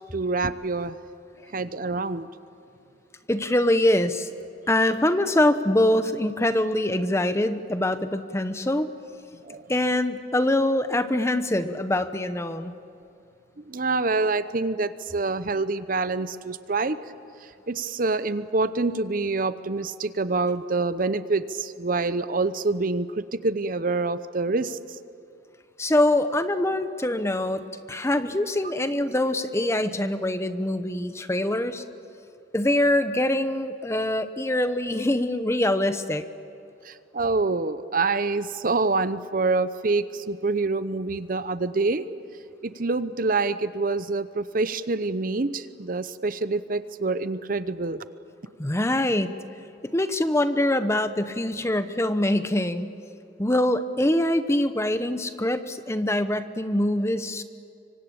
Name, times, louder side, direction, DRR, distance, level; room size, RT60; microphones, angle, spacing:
voice 1, 0.1-1.0 1.5-2.3 9.5-9.6 13.6-17.0 17.7-24.8 36.8-42.0 42.6-48.0, right 3 dB, 45° right, 13 dB, 0.8 m, -26 dB
voice 2, 3.3-4.3 4.7-8.9 9.7-12.7 25.8-31.8 32.5-36.3 48.6-49.3 49.8-52.9 53.4-57.4, left 1 dB, 15° left, 10 dB, 0.9 m, -24 dB
25.5 x 24.5 x 8.7 m, 2.5 s
head